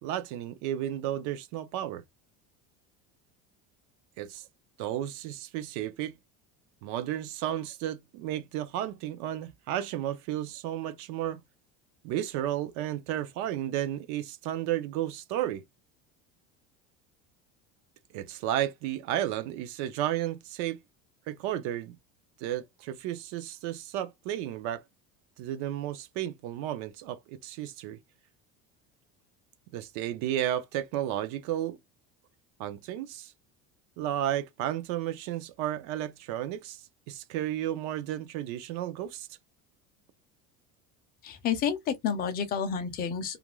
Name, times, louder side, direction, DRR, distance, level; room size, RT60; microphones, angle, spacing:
voice 1, 0.0-2.0 4.2-4.5 4.8-6.1 6.8-11.4 12.0-15.6 18.1-20.8 21.3-22.0 22.4-24.8 25.4-28.0 29.7-31.8 32.6-33.3 34.0-39.3, right 12 dB, 60° right, 0.5 m, -33 dB
voice 2, 41.2-43.4, left 7 dB, 30° left, 0.5 m, -30 dB
2.4 x 2.2 x 3.0 m
cardioid pair, 170°, 33 cm